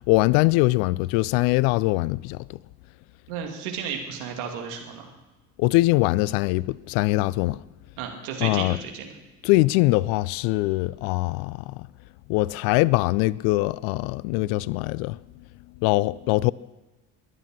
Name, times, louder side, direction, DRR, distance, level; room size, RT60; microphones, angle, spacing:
voice 1, 0.0-2.4 5.6-7.6 8.4-8.8 9.4-11.9 12.3-15.2 15.8-16.5, left 20 dB, 50° left, 0.5 m, -22 dB
voice 2, 3.3-5.1 8.0-9.1, right 7 dB, 65° right, 2.6 m, -33 dB
21.5 x 9.7 x 6.6 m
figure-of-eight pair, 55°, 46 cm